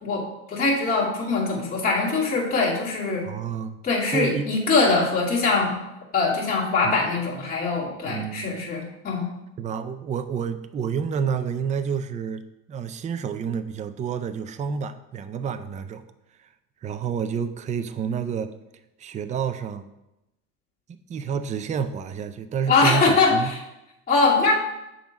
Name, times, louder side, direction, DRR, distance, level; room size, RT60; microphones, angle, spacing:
voice 1, 0.0-3.3 3.8-5.8 6.1-9.3 22.7-23.6 24.1-24.5, left 3 dB, 25° left, -6 dB, 2.3 m, -22 dB
voice 2, 3.2-3.8 4.1-4.5 6.8-7.0 8.1-8.5 9.6-12.4 12.7-16.0 16.4-16.5 16.8-18.5 19.0-19.9 20.9-23.5, right 7 dB, 20° right, 10 dB, 0.3 m, -29 dB
7.0 x 3.7 x 5.1 m, 0.93 s
supercardioid pair, 115°, 35 cm